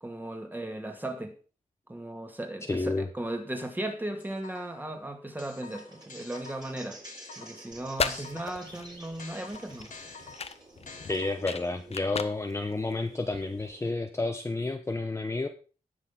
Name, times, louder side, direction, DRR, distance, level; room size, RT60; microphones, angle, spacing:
voice 1, 0.0-1.3 1.9-7.0 7.4-10.0, right 1 dB, 15° right, 2.2 m, -36 dB
voice 2, 2.7-3.1 8.1-8.3 11.1-15.5, left 2 dB, 20° left, 0.8 m, -30 dB
sound 1, 4.2-4.9 5.4-8.7 9.2-11.7, left 4 dB, 65° left, 1.8 m, -48 dB
sound 2, 5.7-13.9, right 2 dB, 30° right, 3.7 m, -51 dB
sound 3, 7.7-13.7, left 5 dB, 45° left, 0.8 m, -37 dB
18.5 x 6.5 x 3.8 m
wide cardioid pair, 130°, 15 cm